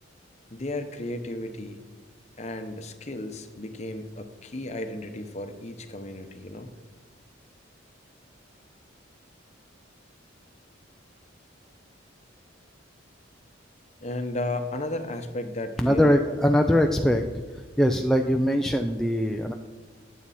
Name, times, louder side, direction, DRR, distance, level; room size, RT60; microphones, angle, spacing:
voice 1, 0.5-1.8 2.4-6.7 14.0-16.1, left 1 dB, 35° left, 7 dB, 0.9 m, -34 dB
voice 2, 15.8-17.2 17.8-19.5, equal, ahead, 3 dB, 0.4 m, -22 dB
18.5 x 7.6 x 4.2 m, 1.4 s
head